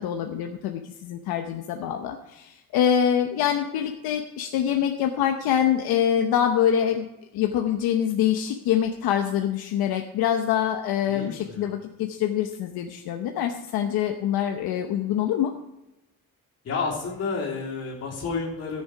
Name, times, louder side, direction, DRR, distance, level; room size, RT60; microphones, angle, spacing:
voice 1, 0.0-7.1 7.3-15.5, left 9 dB, 75° left, 4 dB, 0.9 m, -25 dB
voice 2, 11.1-11.7 16.6-18.8, left 4 dB, 40° left, -4 dB, 3.5 m, -30 dB
15.0 x 7.1 x 4.9 m, 0.94 s
cardioid pair, 175°, 38 cm